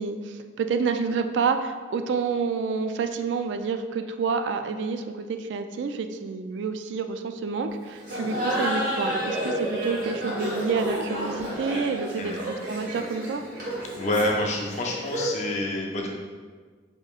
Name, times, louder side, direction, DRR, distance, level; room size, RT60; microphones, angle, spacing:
voice 1, 0.0-13.4, right 5 dB, 80° right, 8 dB, 0.3 m, -28 dB
Laughter, 8.0-15.5, equal, 50° right, 1.3 m, -30 dB
voice 2, 13.9-16.1, left 1 dB, 40° left, -1 dB, 0.6 m, -27 dB
6.5 x 3.0 x 2.4 m, 1.5 s
head